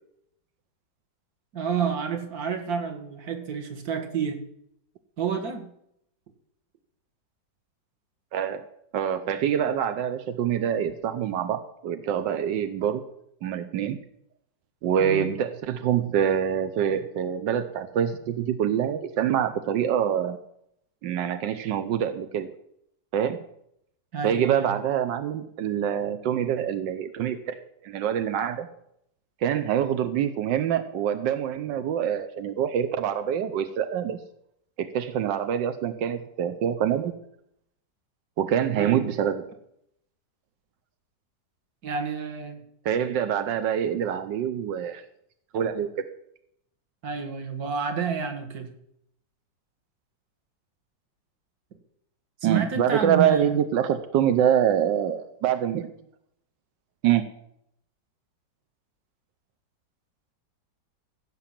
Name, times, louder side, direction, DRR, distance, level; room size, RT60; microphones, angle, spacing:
voice 1, 1.5-4.4 5.2-5.7 15.0-15.3 24.1-24.7 38.7-39.0 41.8-42.6 47.0-48.7 52.4-53.6, right 6 dB, 55° right, 6 dB, 2.0 m, -29 dB
voice 2, 8.3-8.6 8.9-13.0 13.4-14.0 14.8-20.4 21.0-22.5 23.1-23.4 24.2-27.6 27.8-28.7 29.4-34.2 34.8-37.1 38.4-39.4 42.8-45.0 45.5-45.9 52.4-55.9 57.0-57.2, right 9 dB, 90° right, 9 dB, 1.5 m, -25 dB
16.0 x 5.8 x 7.4 m, 0.74 s
omnidirectional pair, 1.9 m